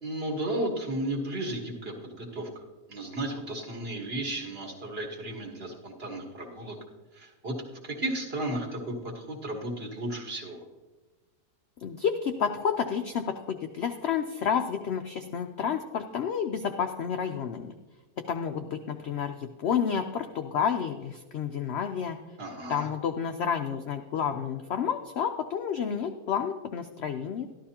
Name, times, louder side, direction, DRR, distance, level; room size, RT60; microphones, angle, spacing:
voice 1, 0.0-2.6 2.9-6.8 7.1-10.6 22.4-22.9, right 1 dB, 40° right, 0 dB, 1.6 m, -34 dB
voice 2, 11.8-17.7 18.3-22.2 22.7-27.5, left 7 dB, 75° left, 6 dB, 0.6 m, -30 dB
13.0 x 11.5 x 2.9 m, 1.2 s
omnidirectional pair, 1.7 m